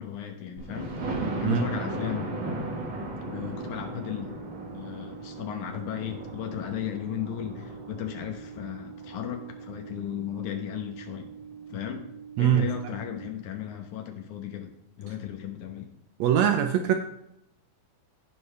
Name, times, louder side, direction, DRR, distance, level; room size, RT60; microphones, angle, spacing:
voice 1, 0.0-2.3 3.3-4.4 4.7-11.3 11.7-12.1 12.4-15.9, left 10 dB, 75° left, 4 dB, 2.4 m, -35 dB
Thunder, 0.6-10.3 10.9-11.0 11.4-11.5 11.7-11.8, right 2 dB, 50° right, 1.8 m, -37 dB
sound 1, 3.3-13.3, right 7 dB, 20° right, 1.3 m, -45 dB
voice 2, 16.2-16.9, right 10 dB, 80° right, 6 dB, 1.6 m, -22 dB
16.0 x 5.5 x 3.3 m, 0.81 s
omnidirectional pair, 3.6 m